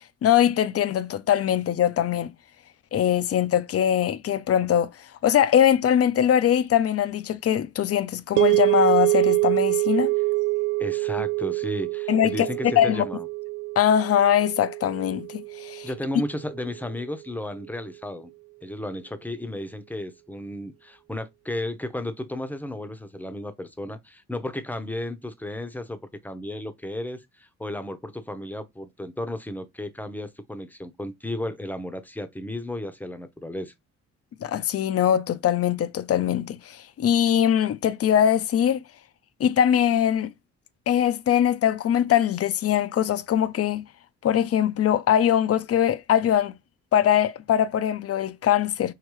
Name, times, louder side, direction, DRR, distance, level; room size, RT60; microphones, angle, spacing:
voice 1, 0.2-2.3 2.9-4.9 5.2-10.1 12.1-12.5 12.8-13.0 13.8-15.9 34.4-38.8 39.4-40.3 40.9-43.8 44.2-46.5 46.9-48.9, left 10 dB, 50° left, 0.6 m, -22 dB
sound 1, 8.4-16.7, right 23 dB, 75° right, 0.5 m, -25 dB
voice 2, 10.8-13.3 15.8-18.3 18.6-33.7, left 1 dB, 5° left, 0.8 m, -34 dB
4.8 x 3.1 x 3.1 m
cardioid pair, 90°, 30 cm